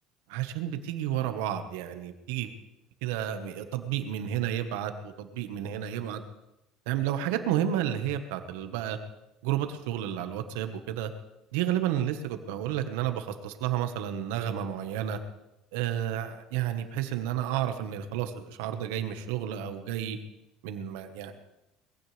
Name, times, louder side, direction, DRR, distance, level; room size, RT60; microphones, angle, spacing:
voice 1, 0.3-2.5 3.0-6.2 6.9-9.0 9.4-11.1 11.5-15.2 15.7-20.2 20.6-21.3, right 11 dB, 85° right, 8 dB, 1.5 m, -31 dB
21.0 x 16.0 x 3.5 m, 0.91 s
cardioid pair, 120°, 0 cm